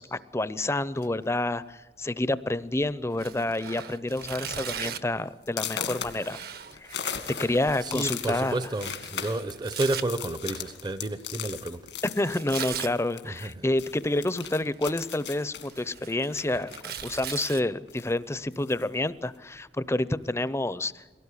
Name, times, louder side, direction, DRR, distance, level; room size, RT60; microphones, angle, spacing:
voice 1, 0.0-6.4 6.8-7.1 7.4-8.6 12.2-21.2, left 2 dB, 15° left, 0.6 m, -29 dB
sound 1, 0.9-1.3 2.1-2.2 2.6-2.8 3.1-3.6 4.0-4.1 4.6-4.7 5.5-13.5 13.8-17.5 17.9-18.9, left 8 dB, 80° left, 2.0 m, -38 dB
Tearing, 3.1-5.2 6.0-10.0 12.2-12.9 14.2-14.7 15.1-17.6, right 8 dB, 60° right, 1.1 m, -39 dB
voice 2, 7.8-11.8 13.2-13.6, right 2 dB, 25° right, 0.7 m, -31 dB
23.0 x 17.5 x 9.9 m
head